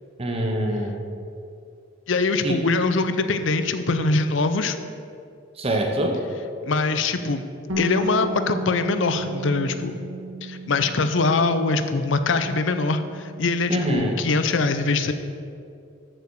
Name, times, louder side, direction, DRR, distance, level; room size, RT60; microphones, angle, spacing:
voice 1, 0.2-1.0 2.4-2.6 5.6-6.1 13.7-14.2, right 1 dB, 30° right, 2 dB, 0.8 m, -24 dB
voice 2, 2.1-4.8 6.6-7.4 7.8-9.9 10.4-15.1, left 3 dB, 70° left, 9 dB, 0.6 m, -23 dB
Bass guitar, 7.7-13.9, right 1 dB, 80° right, 1.3 m, -33 dB
13.5 x 4.9 x 4.7 m, 2.5 s
head